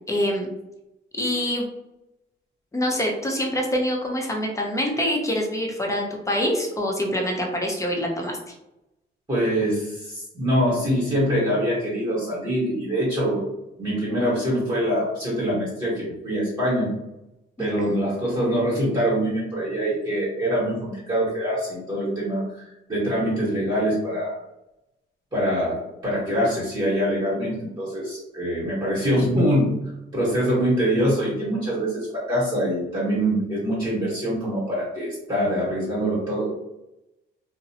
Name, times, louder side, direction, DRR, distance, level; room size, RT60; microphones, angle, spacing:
voice 1, 0.1-0.5 1.1-1.7 2.7-8.5 17.6-18.0, equal, 15° left, 0 dB, 0.6 m, -25 dB
voice 2, 9.3-13.4 13.8-16.9 17.6-24.4 25.3-29.7 30.1-36.6, equal, 20° right, -9 dB, 1.2 m, -24 dB
2.5 x 2.0 x 2.7 m, 0.91 s
cardioid pair, 90°, 20 cm